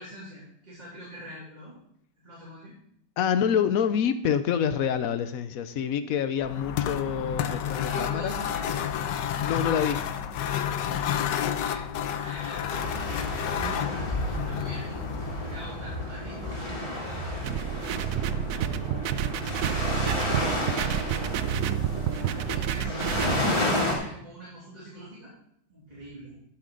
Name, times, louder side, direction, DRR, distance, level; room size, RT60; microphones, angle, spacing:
voice 1, 0.0-1.8 2.2-2.7 7.7-8.7 11.5-11.8 12.2-15.0 15.5-17.4 17.8-18.7 19.5-20.0 20.8-21.8 22.1-23.1 23.7-25.4 25.7-26.3, right 1 dB, 25° right, -8 dB, 3.0 m, -43 dB
voice 2, 3.2-8.3 9.4-10.1, left 8 dB, 65° left, 12 dB, 1.0 m, -27 dB
sound 1, 6.4-15.8, left 9 dB, 90° left, 1.3 m, -30 dB
sound 2, 12.7-23.9, left 1 dB, 20° left, 2.7 m, -31 dB
sound 3, 17.4-23.4, right 10 dB, 70° right, 0.8 m, -29 dB
12.5 x 7.6 x 3.9 m, 0.68 s
omnidirectional pair, 1.8 m